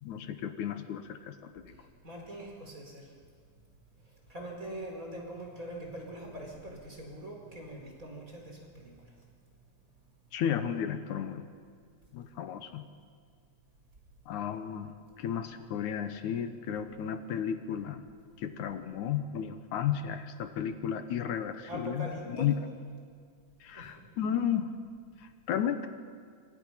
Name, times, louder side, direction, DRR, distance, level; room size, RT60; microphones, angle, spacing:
voice 1, 0.0-1.7 10.3-11.5 12.1-12.9 14.3-18.0 18.4-22.6 23.6-24.7 25.2-25.9, left 9 dB, 80° left, 9 dB, 2.5 m, -33 dB
voice 2, 1.8-3.1 4.3-8.9 21.7-22.5 23.7-24.0, right 1 dB, 25° right, 1 dB, 4.6 m, -43 dB
26.5 x 25.0 x 5.8 m, 2.1 s
omnidirectional pair, 3.4 m